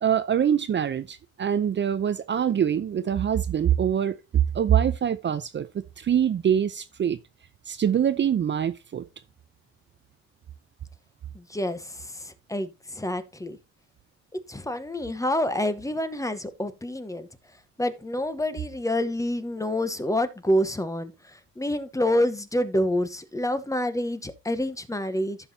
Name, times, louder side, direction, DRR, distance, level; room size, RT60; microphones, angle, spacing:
voice 1, 0.0-7.2 7.7-9.0, right 9 dB, 40° right, 0.6 m, -24 dB
voice 2, 11.3-13.6 14.5-17.3 17.8-25.4, left 1 dB, 10° left, 1.0 m, -27 dB
14.5 x 5.5 x 2.7 m
cardioid pair, 85°, 29 cm